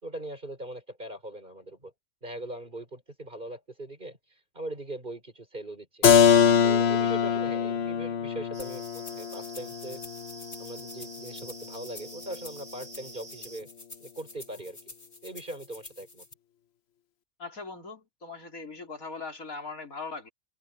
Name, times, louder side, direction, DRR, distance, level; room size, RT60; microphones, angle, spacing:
voice 1, 0.0-1.9 2.2-4.2 4.5-6.1 6.6-10.0 10.6-13.7 14.0-14.8 15.2-16.2, right 1 dB, 35° right, 5.1 m, -40 dB
Keyboard (musical), 6.0-11.6, left 7 dB, 55° left, 1.0 m, -24 dB
sound 1, 8.5-13.6, right 3 dB, 65° right, 2.8 m, -48 dB
sound 2, 8.6-16.3, left 2 dB, 35° left, 2.6 m, -49 dB
voice 2, 17.4-20.3, left 4 dB, 85° left, 4.4 m, -40 dB
omnidirectional pair, 1.4 m